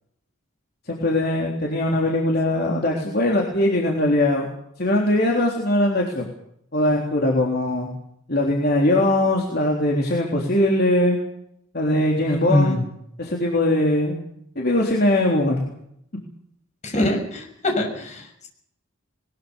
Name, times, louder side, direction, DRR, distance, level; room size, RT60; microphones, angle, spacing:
voice 1, 0.9-4.5 4.8-6.3 6.7-7.9 8.3-11.2 11.7-12.8 13.2-14.1 14.6-15.6, left 1 dB, 50° left, -1 dB, 3.6 m, -21 dB
voice 2, 12.5-12.8 16.8-18.5, left 1 dB, 35° left, 3 dB, 6.4 m, -23 dB
21.5 x 21.0 x 7.0 m, 0.73 s
head